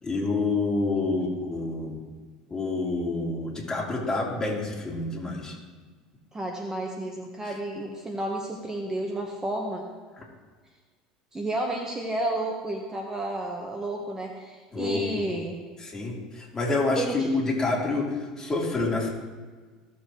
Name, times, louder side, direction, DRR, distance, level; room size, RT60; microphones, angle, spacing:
voice 1, 0.0-2.0 2.5-5.6 7.4-7.5 10.2-10.3 14.7-15.3 15.8-19.1, left 3 dB, 20° left, -3 dB, 3.3 m, -28 dB
voice 2, 6.3-9.9 11.3-15.6 16.9-17.3, right 1 dB, 15° right, 1 dB, 1.4 m, -31 dB
17.0 x 7.0 x 3.2 m, 1.5 s
hypercardioid pair, 75°, 3 cm